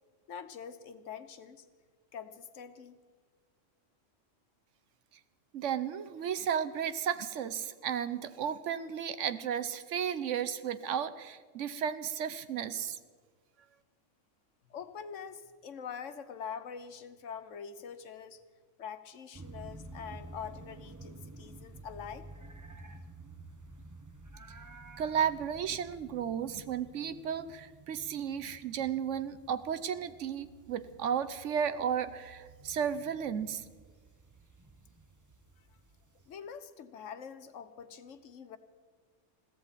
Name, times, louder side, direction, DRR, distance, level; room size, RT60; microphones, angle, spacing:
voice 1, 0.3-1.6 2.1-3.0 14.7-18.4 18.8-22.3 36.3-38.6, left 7 dB, 75° left, 10 dB, 1.2 m, -44 dB
voice 2, 5.5-13.0 25.0-33.6, right 8 dB, 75° right, 12 dB, 1.1 m, -34 dB
sound 1, 19.3-36.3, right 2 dB, 15° right, 0.8 m, -52 dB
21.5 x 15.5 x 4.1 m, 1.5 s
omnidirectional pair, 1.3 m